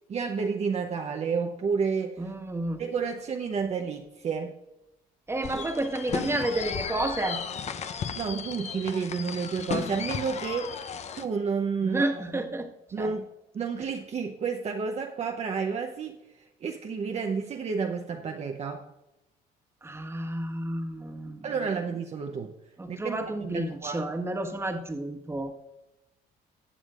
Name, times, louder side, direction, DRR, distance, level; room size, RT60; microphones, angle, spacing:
voice 1, 0.1-2.3 2.8-4.5 5.5-5.6 8.1-10.8 11.2-12.4 12.9-13.3 13.5-18.8 21.4-22.5 22.9-23.2 23.5-24.1, right 5 dB, 40° right, 3 dB, 0.8 m, -30 dB
voice 2, 2.2-2.8 5.3-7.4 11.8-12.7 13.0-13.1 19.8-21.5 22.8-25.5, right 2 dB, 15° right, 4 dB, 1.4 m, -31 dB
sound 1, 5.4-11.3, left 7 dB, 40° left, 0.7 m, -35 dB
19.5 x 7.2 x 2.5 m, 0.94 s
cardioid pair, 110°, 17 cm